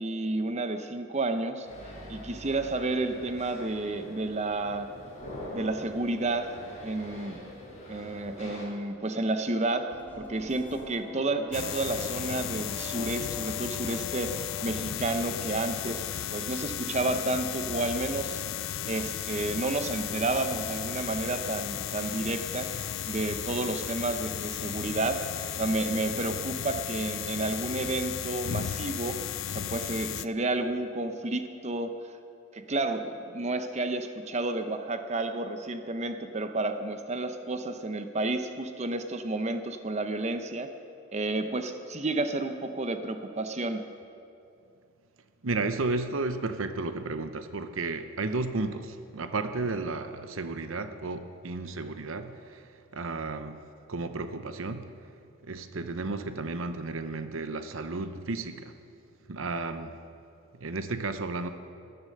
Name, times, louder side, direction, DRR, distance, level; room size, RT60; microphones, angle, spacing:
voice 1, 0.0-1.7 2.1-4.9 5.5-6.6 6.8-7.4 7.9-18.4 18.9-22.8 23.1-25.3 25.6-32.1 32.5-40.7 41.1-43.8, right 2 dB, 35° right, 8 dB, 0.8 m, -31 dB
sound 1, 1.6-8.7, left 1 dB, 35° left, 5.2 m, -44 dB
sound 2, 9.9-14.9, left 5 dB, 10° left, 2.2 m, -43 dB
sound 3, 11.5-30.3, left 10 dB, 80° left, 0.4 m, -35 dB
voice 2, 45.4-53.6 53.9-55.1 55.4-58.7 59.3-60.0 60.5-61.5, right 3 dB, 70° right, 9 dB, 0.8 m, -33 dB
18.0 x 12.0 x 6.6 m, 2.6 s
head